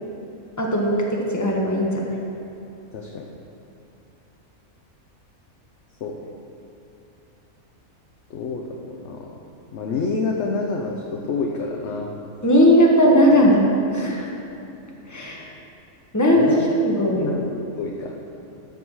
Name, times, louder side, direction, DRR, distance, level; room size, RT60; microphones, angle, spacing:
voice 1, 0.6-2.2 12.4-13.7 13.9-14.3 15.1-15.5 16.1-16.6 16.8-17.3, equal, 15° left, -2 dB, 1.2 m, -18 dB
voice 2, 2.9-3.3 6.0-6.2 8.3-9.3 9.7-12.1 16.4-16.7 17.1-17.3 17.8-18.1, left 4 dB, 55° left, 0 dB, 1.0 m, -28 dB
13.0 x 5.5 x 6.2 m, 2.7 s
omnidirectional pair, 1.5 m